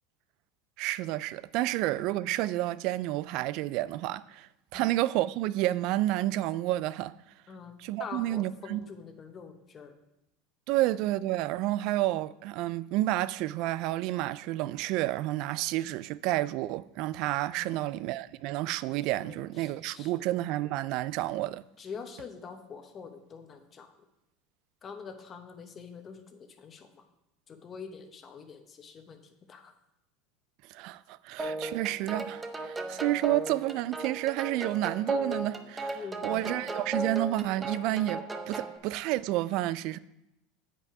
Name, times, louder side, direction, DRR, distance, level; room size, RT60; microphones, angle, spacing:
voice 1, 0.8-7.1 7.8-8.9 10.7-21.6 30.7-40.0, right 16 dB, 55° right, 0.3 m, -30 dB
voice 2, 8.0-9.9 17.5-17.9 19.2-20.1 21.8-23.9 24.8-27.0 27.5-29.2 29.5-29.7 35.9-36.7, left 6 dB, 30° left, 0.9 m, -45 dB
sound 1, 31.4-38.8, right 2 dB, 15° right, 0.7 m, -36 dB
8.4 x 5.4 x 4.9 m
supercardioid pair, 130°, 0 cm